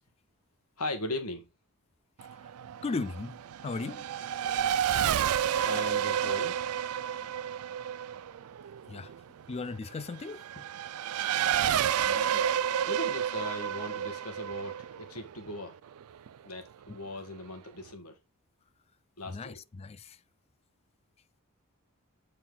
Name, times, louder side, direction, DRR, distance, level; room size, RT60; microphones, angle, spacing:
voice 1, 0.8-1.5 4.2-4.3 5.6-6.6 12.0-12.4 12.9-15.8 16.4-18.2 19.2-19.6, left 2 dB, 80° left, 1.8 m, -39 dB
Race car auto racing / Accelerating revving vroom, 2.2-16.3, right 9 dB, 70° right, 0.4 m, -31 dB
voice 2, 2.8-3.4 3.6-4.1 8.9-9.1 9.5-10.4 19.3-20.2, left 3 dB, 30° left, 0.4 m, -36 dB
8.3 x 4.4 x 3.9 m
head